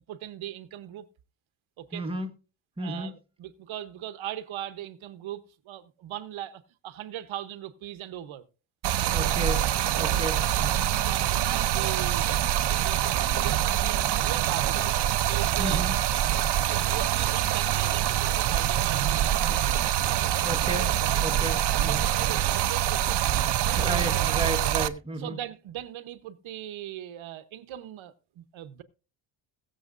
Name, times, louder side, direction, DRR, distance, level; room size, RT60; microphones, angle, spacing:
voice 1, 0.1-1.1 1.8-2.1 2.8-8.4 9.0-9.3 9.9-10.4 10.8-15.0 15.3-15.9 16.3-19.8 21.7-23.4 23.8-24.3 25.1-28.8, right 12 dB, 75° right, 1.0 m, -39 dB
voice 2, 1.9-2.3 2.8-3.1 9.1-9.6 10.0-10.8 15.6-15.9 20.4-20.9 21.2-22.0 23.7-25.4, right 1 dB, 10° right, 1.2 m, -33 dB
Stream, 8.8-24.9, right 11 dB, 55° right, 0.7 m, -25 dB
21.0 x 7.2 x 2.5 m
cardioid pair, 145°, 47 cm